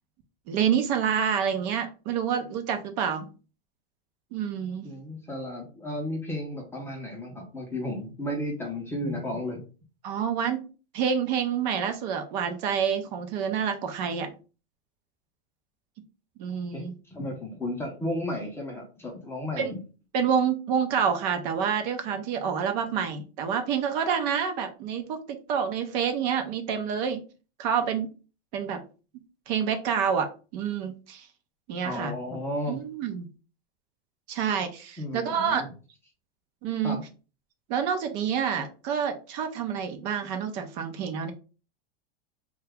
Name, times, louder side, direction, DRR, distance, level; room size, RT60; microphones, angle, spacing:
voice 1, 0.5-3.3 4.3-4.9 10.0-10.6 10.9-14.3 16.4-16.9 19.6-19.7 20.1-25.2 25.5-27.2 27.6-28.1 28.5-28.8 29.5-31.3 31.7-32.1 32.7-33.3 34.3-35.6 36.6-37.0 37.7-41.3, right 7 dB, 45° right, 6 dB, 0.5 m, -28 dB
voice 2, 4.8-9.6 16.7-19.8 31.8-32.8 35.0-35.7 36.8-37.0, left 1 dB, 10° left, 0 dB, 0.6 m, -33 dB
2.8 x 2.3 x 3.4 m, 0.34 s
supercardioid pair, 150°, 30 cm